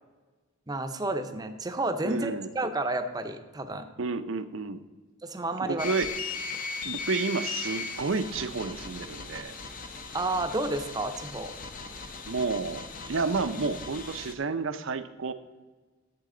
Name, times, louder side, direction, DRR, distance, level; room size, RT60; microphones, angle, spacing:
voice 1, 0.7-3.9 5.2-5.9 10.1-11.5, right 2 dB, 20° right, 7 dB, 0.7 m, -31 dB
voice 2, 2.0-2.5 4.0-4.8 5.6-6.1 6.8-9.6 12.3-15.3, right 4 dB, 65° right, 11 dB, 0.6 m, -31 dB
sound 1, 5.8-14.3, left 4 dB, 40° left, 0.8 m, -38 dB
11.5 x 7.7 x 3.8 m, 1.3 s
head